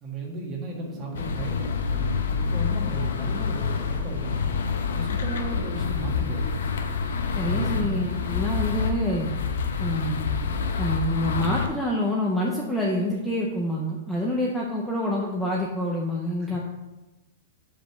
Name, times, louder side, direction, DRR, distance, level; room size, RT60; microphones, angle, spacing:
voice 1, 0.0-4.5 4.9-6.6 7.3-8.1 16.4-16.6, right 1 dB, 20° right, -2 dB, 1.4 m, -35 dB
Wind, 0.7-9.4, left 3 dB, 25° left, 0.9 m, -44 dB
sound 1, 1.1-11.7, left 5 dB, 80° left, 0.8 m, -27 dB
voice 2, 7.4-9.3 9.8-10.4 10.8-16.6, left 1 dB, 5° left, -3 dB, 0.6 m, -27 dB
5.2 x 5.0 x 5.9 m, 1.1 s
supercardioid pair, 170°, 0 cm